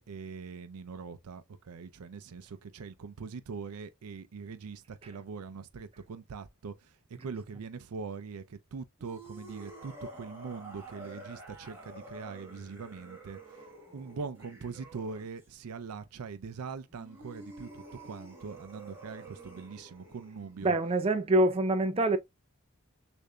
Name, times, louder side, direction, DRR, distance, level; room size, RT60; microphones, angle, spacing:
voice 1, 0.0-13.7 13.9-21.0, right 5 dB, 85° right, 0.4 m, -42 dB
sound 1, 9.0-15.5 16.9-21.3, right 2 dB, 10° right, 1.2 m, -49 dB
voice 2, 20.6-22.2, right 1 dB, 25° right, 0.4 m, -25 dB
6.5 x 2.6 x 2.2 m
head